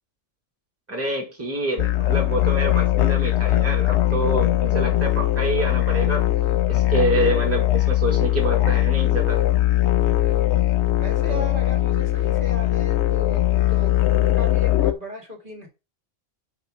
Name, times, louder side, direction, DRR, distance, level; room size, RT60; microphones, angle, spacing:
voice 1, 0.9-6.3 6.7-9.4, right 1 dB, 10° right, 1.9 m, -27 dB
sound 1, 1.8-14.9, left 14 dB, 70° left, 0.9 m, -20 dB
voice 2, 10.0-10.4 11.0-15.7, equal, 40° right, 2.3 m, -36 dB
5.2 x 4.9 x 6.3 m
omnidirectional pair, 1.3 m